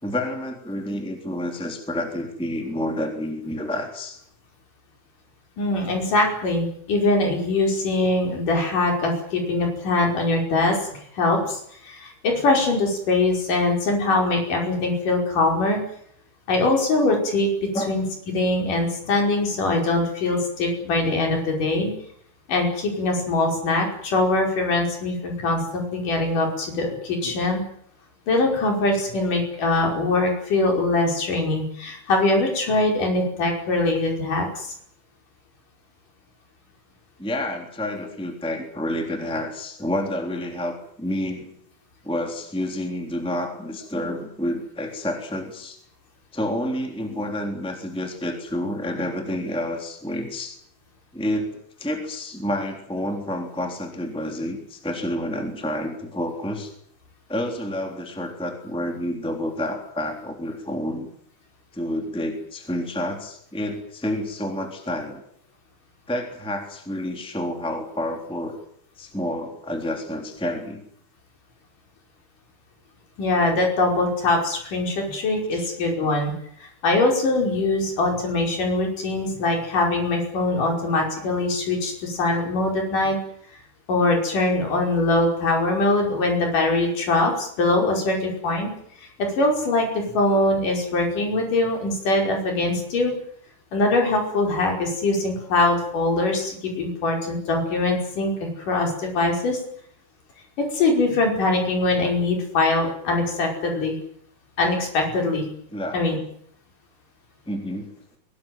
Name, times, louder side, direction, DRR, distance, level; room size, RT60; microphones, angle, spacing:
voice 1, 0.0-4.2 17.7-18.0 37.2-41.5 42.0-45.8 46.3-50.6 51.1-56.7 57.3-61.1 61.7-65.2 66.1-68.6 69.0-70.8 75.5-75.7 105.7-106.0 107.5-107.9, left 1 dB, ahead, 3 dB, 3.3 m, -29 dB
voice 2, 5.6-15.8 16.5-17.5 17.7-18.0 18.3-21.9 22.5-27.6 28.3-34.7 47.1-47.2 73.2-76.3 76.8-83.2 83.9-88.7 89.2-93.1 93.7-99.6 100.6-104.0 104.6-105.4 105.9-106.2, left 2 dB, 80° left, 1 dB, 6.9 m, -22 dB
22.5 x 19.0 x 9.3 m, 0.67 s
omnidirectional pair, 3.7 m